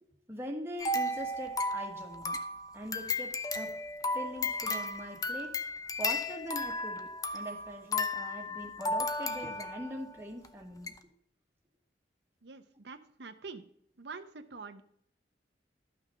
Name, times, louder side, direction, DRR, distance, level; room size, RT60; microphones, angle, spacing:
voice 1, 0.0-2.4 2.7-3.8 4.1-5.6 6.0-10.9, equal, 15° right, 1 dB, 1.5 m, -42 dB
sound 1, 0.8-10.0 10.4-10.5 10.9-11.0, left 2 dB, 20° left, 0.6 m, -34 dB
voice 2, 12.4-13.6 14.0-14.8, right 4 dB, 80° right, 8 dB, 0.8 m, -46 dB
12.5 x 6.1 x 5.6 m, 0.69 s
head